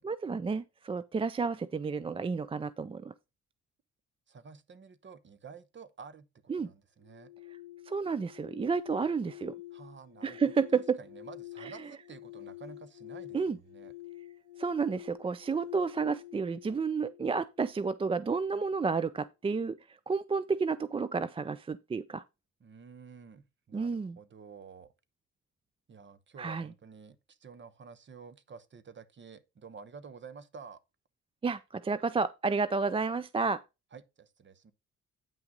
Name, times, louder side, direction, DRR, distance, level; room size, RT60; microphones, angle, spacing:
voice 1, 0.0-3.1 6.5-6.7 7.9-9.6 10.2-11.0 11.6-11.7 13.3-13.6 14.6-22.2 23.7-24.2 26.4-26.7 31.4-33.6, right 5 dB, 20° right, 0.4 m, -31 dB
voice 2, 4.3-7.3 9.7-10.4 10.7-13.9 22.6-24.9 25.9-30.8 33.9-34.7, right 5 dB, 40° right, 1.0 m, -51 dB
sound 1, 7.0-18.0, left 16 dB, 85° right, 4.8 m, -48 dB
9.0 x 5.9 x 3.8 m
cardioid pair, 90°, 30 cm